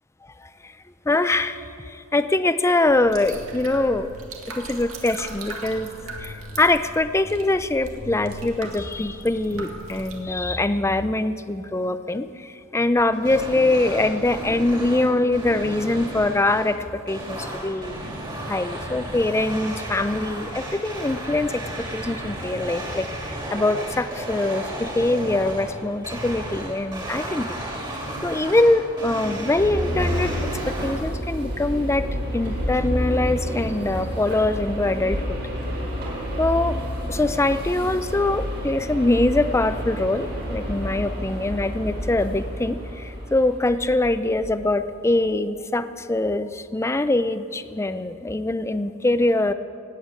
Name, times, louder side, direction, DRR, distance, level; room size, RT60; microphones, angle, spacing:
voice 1, 0.4-0.7 1.1-1.6 1.9-4.1 4.5-5.9 6.2-17.9 18.4-27.6 28.2-30.4 30.7-32.1 32.3-35.4 36.4-36.8 37.1-49.5, left 2 dB, 15° left, 11 dB, 0.5 m, -23 dB
sound 1, 3.0-10.2, right 2 dB, 80° right, 2.0 m, -38 dB
sound 2, 13.1-31.0, right 1 dB, 20° right, 2.8 m, -33 dB
sound 3, 29.6-44.7, equal, 55° right, 4.6 m, -29 dB
17.0 x 8.5 x 9.0 m, 2.4 s
head